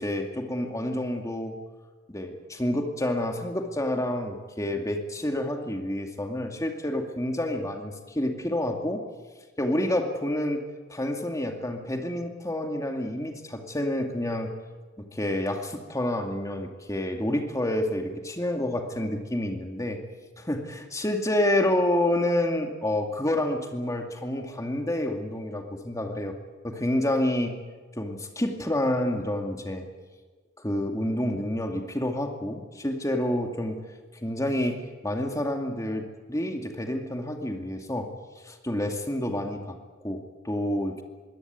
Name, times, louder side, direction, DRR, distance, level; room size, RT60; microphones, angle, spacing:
voice 1, 0.0-1.6 2.1-9.0 9.6-14.5 15.0-20.0 20.5-26.3 26.6-27.6 28.0-29.9 30.6-33.8 34.2-38.1 38.5-39.8 40.0-41.0, left 1 dB, 15° left, 4 dB, 2.3 m, -28 dB
22.5 x 17.0 x 9.5 m, 1.4 s
head